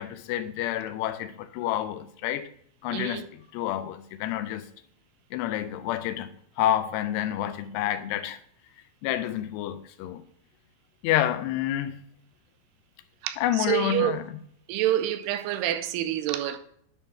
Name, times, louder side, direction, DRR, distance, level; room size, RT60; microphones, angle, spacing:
voice 1, 0.0-2.5 2.8-3.2 3.5-4.7 5.3-6.3 6.6-8.4 9.0-10.2 11.0-12.0 13.4-14.2, left 12 dB, 90° left, 2.7 m, -28 dB
voice 2, 2.9-3.3 13.2-14.2 14.7-16.6, right 13 dB, 85° right, 2.7 m, -27 dB
10.5 x 3.6 x 5.6 m
omnidirectional pair, 4.7 m